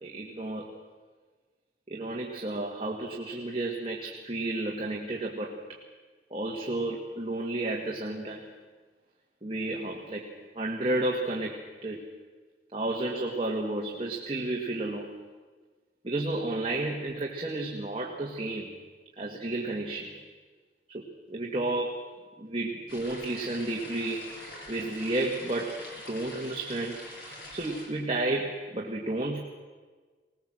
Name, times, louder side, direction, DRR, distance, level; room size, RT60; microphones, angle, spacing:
voice 1, 0.0-0.7 1.9-5.8 6.3-8.4 9.4-10.3 10.5-12.0 12.7-15.1 16.0-18.7 19.2-20.1 20.9-22.0 22.4-24.3 24.7-25.8 26.1-27.0 27.5-29.4, right 2 dB, 30° right, -1 dB, 1.8 m, -32 dB
sound 1, 22.9-27.9, left 1 dB, 65° left, 6.2 m, -45 dB
20.0 x 20.0 x 7.6 m, 1.4 s
head